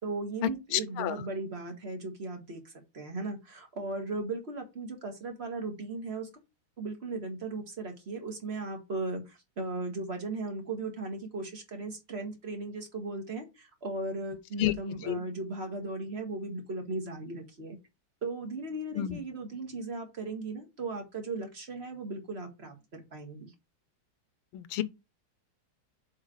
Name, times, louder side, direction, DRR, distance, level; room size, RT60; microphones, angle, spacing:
voice 1, 0.0-2.6 2.9-6.3 6.8-17.8 18.2-23.5, right 2 dB, 30° right, 1.9 m, -37 dB
voice 2, 0.7-1.1 14.6-14.7 15.0-15.2 19.0-19.2 24.5-24.8, left 13 dB, 85° left, 1.6 m, -29 dB
7.3 x 4.1 x 4.8 m
omnidirectional pair, 2.3 m